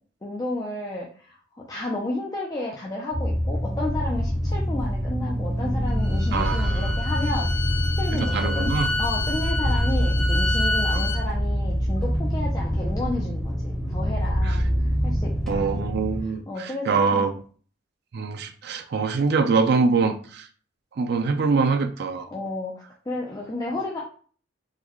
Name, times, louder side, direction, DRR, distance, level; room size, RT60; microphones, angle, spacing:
voice 1, 0.2-1.4 1.7-7.5 8.0-8.7 9.0-14.7 15.0-16.0 16.5-17.3 22.3-22.7 23.1-24.0, left 2 dB, 20° left, -3 dB, 0.4 m, -32 dB
sound 1, 3.1-16.2, equal, ahead, 1.0 m, -25 dB
Bowed string instrument, 5.9-11.2, left 2 dB, 60° left, 0.9 m, -30 dB
voice 2, 6.3-6.9 8.1-8.9 10.9-11.1 14.4-14.6 15.5-17.3 18.1-20.5 21.0-22.3, right 4 dB, 55° right, 8 dB, 0.4 m, -24 dB
3.8 x 2.2 x 3.0 m, 0.43 s
head